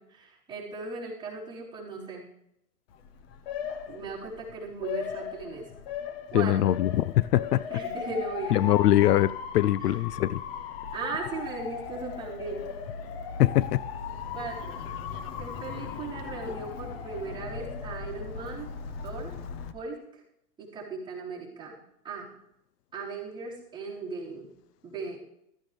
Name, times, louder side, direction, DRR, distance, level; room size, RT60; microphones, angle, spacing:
voice 1, 0.0-2.3 3.8-5.7 6.3-6.6 7.7-8.6 9.8-10.0 10.9-12.7 14.3-14.8 15.4-18.7 19.0-19.3 19.7-20.2 20.6-21.8 22.0-22.3 22.9-24.5 24.8-25.2, right 4 dB, 10° right, -8 dB, 4.4 m, -37 dB
Motor vehicle (road) / Siren, 2.9-19.7, left 7 dB, 40° left, 1.1 m, -38 dB
voice 2, 6.3-7.6 8.5-10.4 13.4-13.8, left 13 dB, 70° left, 18 dB, 0.6 m, -22 dB
15.0 x 13.5 x 3.5 m, 0.80 s
hypercardioid pair, 150°, 49 cm